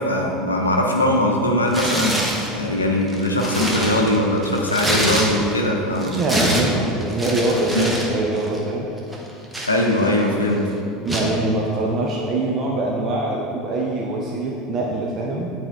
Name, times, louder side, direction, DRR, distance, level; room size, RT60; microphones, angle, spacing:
voice 1, 0.0-6.2 6.6-6.7 7.8-7.9 9.7-10.7, left 1 dB, 85° left, 0 dB, 0.6 m, -21 dB
Tearing, 1.7-2.5 3.0-5.7 6.0-8.1 8.4-8.6 9.1-10.3 11.1-11.3, right 1 dB, 15° right, 1.0 m, -25 dB
voice 2, 6.1-8.9 11.0-15.5, right 2 dB, 35° right, -2 dB, 0.7 m, -23 dB
8.7 x 4.2 x 3.5 m, 2.8 s
figure-of-eight pair, 70°, 0 cm